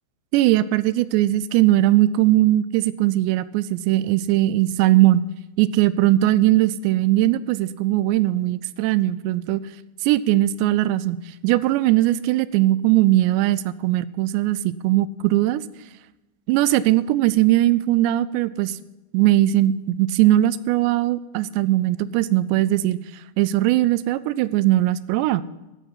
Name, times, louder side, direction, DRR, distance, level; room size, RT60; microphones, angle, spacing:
voice 1, 0.3-5.2 5.6-9.6 10.0-15.6 16.5-18.8 19.1-23.0 23.4-25.4, right 15 dB, 85° right, 17 dB, 2.7 m, -19 dB
14.5 x 9.3 x 5.6 m, 1.0 s
omnidirectional pair, 5.0 m